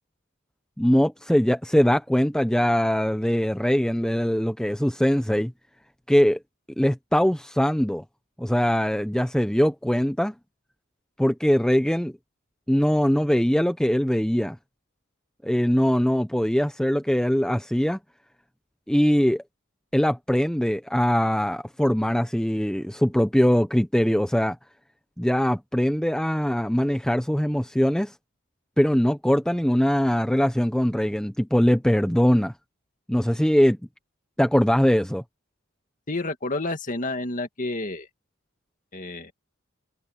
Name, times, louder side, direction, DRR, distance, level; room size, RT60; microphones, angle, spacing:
voice 1, 0.8-5.5 6.1-6.4 6.8-8.0 8.4-10.3 11.2-12.1 12.7-14.6 15.4-18.0 18.9-19.4 19.9-24.6 25.2-28.1 28.8-32.5 33.1-33.8 34.4-35.2, equal, 5° left, 0.7 m, -22 dB
voice 2, 36.1-38.1 38.9-39.3, left 2 dB, 40° left, 2.1 m, -30 dB
head